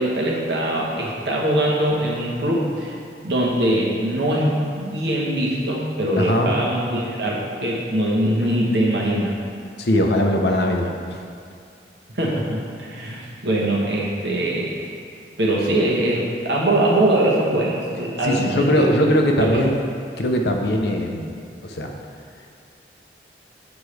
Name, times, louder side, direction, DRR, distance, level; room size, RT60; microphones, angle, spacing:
voice 1, 0.0-2.9 3.2-9.4 12.1-14.9 15.4-19.0 19.4-19.6, right 1 dB, 70° right, -3 dB, 1.1 m, -22 dB
voice 2, 6.2-6.5 9.8-11.2 18.2-19.7 20.2-21.3 21.6-21.9, equal, 65° left, 2 dB, 0.6 m, -20 dB
8.3 x 4.5 x 3.3 m, 2.4 s
head